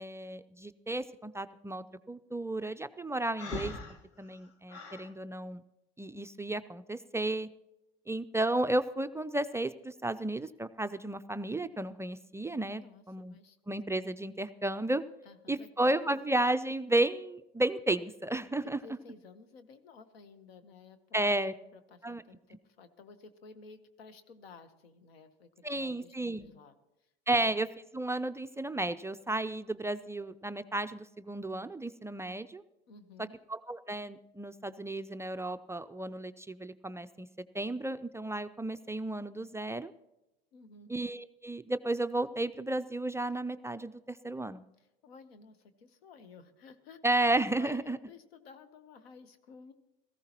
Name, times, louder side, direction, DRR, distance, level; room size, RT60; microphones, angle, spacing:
voice 1, 0.0-3.7 4.2-5.6 6.0-7.5 8.1-12.8 13.1-13.4 13.7-15.0 15.5-18.8 21.1-21.5 22.0-22.2 25.6-26.5 27.3-27.7 27.9-32.6 33.5-37.3 37.5-39.9 40.9-44.6 47.0-48.0, right 2 dB, 10° right, 10 dB, 0.3 m, -33 dB
Breathing, 3.4-5.1, left 4 dB, 50° left, 1.4 m, -41 dB
voice 2, 12.7-13.6 15.2-16.2 18.6-26.8 27.0-27.1 27.4-27.6 32.9-33.4 40.5-40.9 44.8-47.0 47.6-49.7, left 5 dB, 90° left, 11 dB, 1.1 m, -54 dB
17.5 x 15.0 x 3.0 m, 0.95 s
hypercardioid pair, 80°, 30 cm